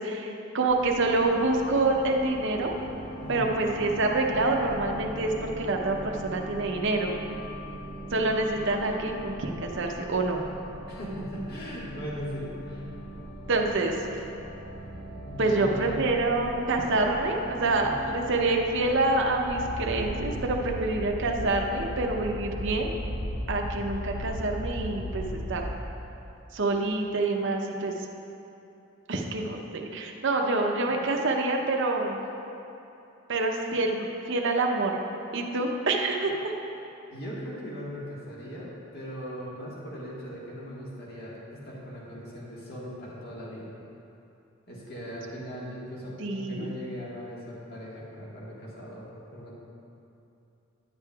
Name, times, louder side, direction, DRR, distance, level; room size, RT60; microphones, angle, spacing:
voice 1, 0.0-2.8 3.3-7.1 8.1-10.4 13.5-14.0 15.4-22.9 23.5-25.6 26.5-27.9 29.1-32.2 33.3-35.0 35.3-36.5 46.2-46.7, right 2 dB, 60° right, 1 dB, 0.7 m, -27 dB
sound 1, 0.7-20.6, equal, 20° left, 1.1 m, -40 dB
voice 2, 3.2-3.5 10.9-13.0 15.1-16.0 17.7-18.0 37.1-43.7 44.7-49.5, equal, 50° left, -6 dB, 1.6 m, -39 dB
sound 2, 19.5-25.7, equal, 65° left, 1.2 m, -35 dB
10.5 x 8.3 x 2.3 m, 2.8 s
head